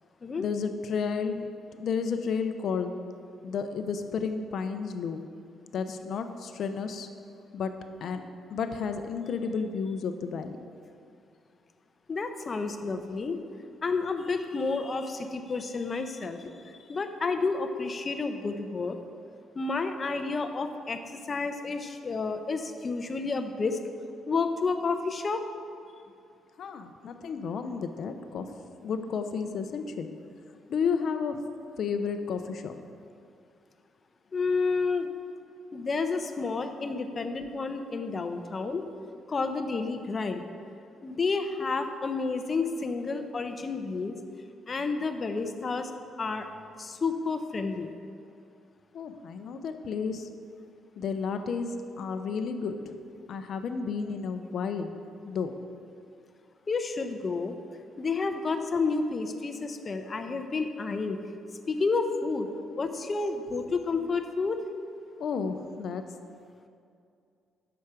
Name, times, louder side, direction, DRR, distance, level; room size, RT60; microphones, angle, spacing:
voice 1, 0.4-2.9 3.4-5.2 5.7-7.1 7.5-8.2 8.5-10.6 16.4-16.5 26.6-28.6 28.8-30.1 30.7-31.4 31.8-32.8 48.9-50.3 51.0-53.0 53.3-55.0 55.2-55.5 62.8-62.9 65.2-66.0, left 5 dB, 65° left, 8 dB, 0.7 m, -32 dB
voice 2, 12.1-13.4 13.8-19.0 19.6-23.8 24.3-25.4 34.3-35.1 35.7-38.8 39.3-40.4 41.0-44.2 44.7-45.9 46.2-46.5 46.8-47.9 56.7-57.6 58.0-61.2 61.7-62.5 62.8-64.6, left 4 dB, 35° left, 7 dB, 0.8 m, -30 dB
10.5 x 7.0 x 5.0 m, 2.4 s
cardioid pair, 90°, 0 cm